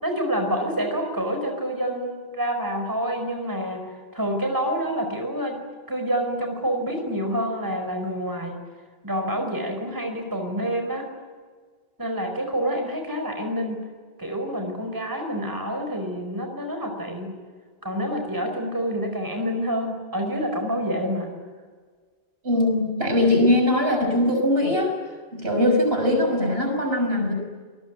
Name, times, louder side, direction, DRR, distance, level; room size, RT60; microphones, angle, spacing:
voice 1, 0.0-5.6 5.9-8.6 9.0-11.1 12.0-13.8 14.2-17.3 17.8-21.3, equal, 20° right, 4 dB, 4.8 m, -27 dB
voice 2, 22.4-24.9 25.3-27.3, left 1 dB, 75° right, 4 dB, 6.4 m, -21 dB
28.0 x 20.5 x 9.3 m, 1.5 s
omnidirectional pair, 1.0 m